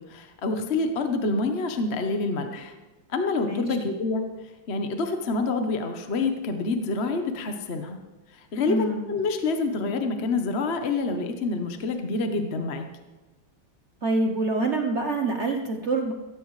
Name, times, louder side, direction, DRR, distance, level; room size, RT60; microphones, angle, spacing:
voice 1, 0.0-2.7 3.1-4.2 4.7-8.0 8.3-12.9, left 3 dB, 40° left, 6 dB, 0.9 m, -27 dB
voice 2, 8.7-9.0 14.0-16.1, right 2 dB, 50° right, 3 dB, 0.8 m, -26 dB
16.5 x 14.5 x 3.3 m, 1.2 s
omnidirectional pair, 2.3 m